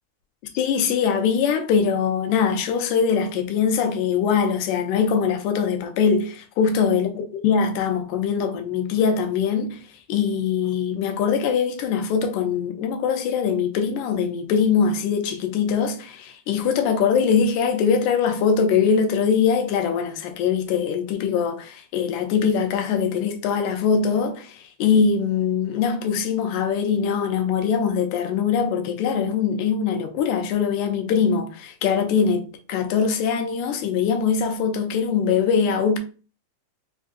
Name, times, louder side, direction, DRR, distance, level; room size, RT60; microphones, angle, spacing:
voice 1, 0.6-9.8 10.1-36.0, left 6 dB, 85° left, 2.1 m, -22 dB
5.5 x 2.5 x 2.4 m
omnidirectional pair, 3.4 m